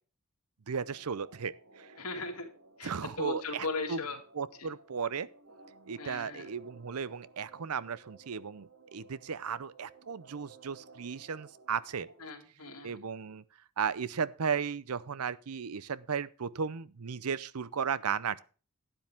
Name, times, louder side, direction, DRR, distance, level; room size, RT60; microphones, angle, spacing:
voice 1, 0.7-1.9 2.8-4.0 4.4-5.3 5.9-12.1 12.8-13.4 13.8-18.4, right 6 dB, 80° right, 0.6 m, -35 dB
sound 1, 0.8-12.3, right 3 dB, 65° right, 2.2 m, -57 dB
voice 2, 2.0-2.5 2.8-4.2 4.6-4.7 6.0-6.5 12.2-13.0, left 3 dB, 85° left, 2.3 m, -38 dB
12.0 x 10.0 x 3.5 m
head